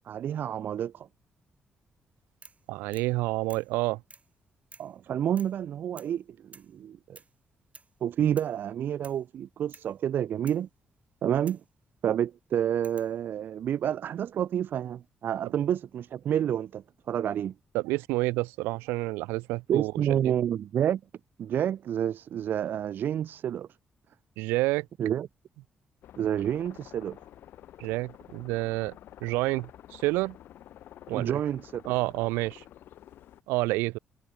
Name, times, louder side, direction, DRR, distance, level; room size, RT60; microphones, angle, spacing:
voice 1, 0.1-1.1 4.8-7.2 8.0-10.7 11.2-11.6 12.0-17.5 19.7-21.0 21.4-23.7 25.0-25.3 26.2-27.2 31.1-31.8, right 10 dB, 65° right, 0.3 m, -29 dB
sound 1, 2.4-2.7 2.9-3.2 3.5-3.7 4.1-4.3 4.7-5.0 5.4-5.6 6.0-6.2 6.5-6.8 7.2-7.3 7.7-8.0 8.4-8.6 9.0-9.3 9.7-9.9 10.5-10.7 11.5-11.7 12.8-13.2 14.3-14.8, right 4 dB, 40° right, 4.3 m, -52 dB
voice 2, 2.7-4.0 15.4-15.5 17.7-19.9 24.4-24.9 27.8-29.0 29.2-30.4 31.1-31.4 31.8-32.6 33.5-34.0, right 21 dB, 90° right, 1.1 m, -29 dB
sound 2, 26.0-33.4, left 12 dB, 75° left, 1.7 m, -50 dB
hypercardioid pair, 45°, 4 cm